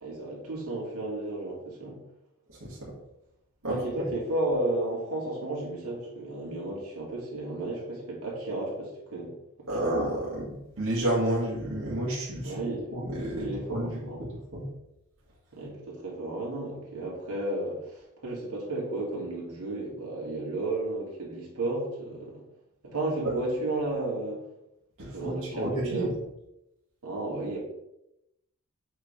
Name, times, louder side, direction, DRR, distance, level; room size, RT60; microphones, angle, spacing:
voice 1, 0.0-2.0 3.7-9.3 9.8-9.9 12.4-12.9 13.3-14.2 15.5-22.4 22.8-24.4 25.1-26.1 27.0-27.6, right 2 dB, 80° right, -3 dB, 2.7 m, -33 dB
voice 2, 2.5-2.9 3.6-4.1 9.7-12.5 12.9-14.7 23.2-23.3 25.0-26.1, right 1 dB, 65° right, -7 dB, 2.1 m, -31 dB
8.0 x 3.8 x 5.0 m, 0.86 s
head